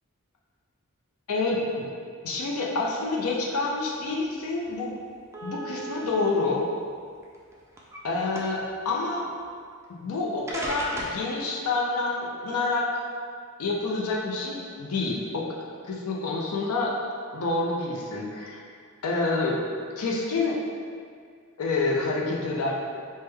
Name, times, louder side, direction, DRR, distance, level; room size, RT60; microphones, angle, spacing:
voice 1, 1.3-1.9 2.2-4.9 5.4-6.7 8.0-9.3 9.9-13.0 13.6-15.4 15.9-16.9 17.3-18.6 19.0-19.6 20.0-20.6 21.6-22.7, left 3 dB, 70° left, -2 dB, 0.5 m, -28 dB
sound 1, 4.2-4.3 4.6-4.8 5.3-6.3 7.2-8.0 8.3-8.7 9.8-9.9 10.5-11.2, right 2 dB, 10° right, 0.3 m, -36 dB
3.3 x 2.1 x 3.3 m, 2.1 s
head